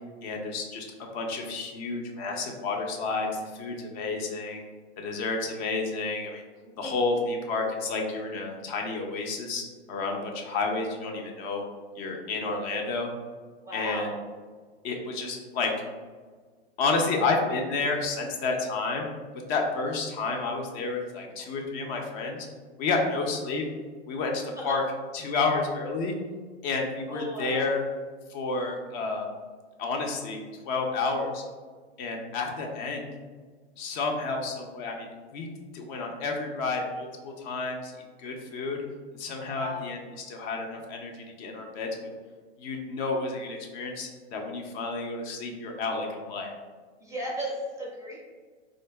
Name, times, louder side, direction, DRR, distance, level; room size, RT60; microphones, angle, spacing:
voice 1, 0.2-0.9 1.1-3.3 3.6-4.6 5.0-6.4 6.8-9.6 9.9-11.6 12.0-13.1 13.7-14.1 14.8-15.7 16.8-19.1 19.5-22.5 22.8-23.6 24.1-24.8 25.1-26.1 26.6-27.8 28.3-29.3 29.8-31.4 32.0-33.0 33.8-35.5 35.7-37.9 38.2-38.8 39.2-41.9 42.6-46.5, left 3 dB, 45° left, 2 dB, 0.6 m, -30 dB
voice 2, 13.6-14.2 24.6-24.7 27.1-27.6 39.5-39.9 47.0-48.2, equal, 10° right, -3 dB, 0.5 m, -35 dB
3.7 x 2.5 x 2.2 m, 1.5 s
hypercardioid pair, 115°, 33 cm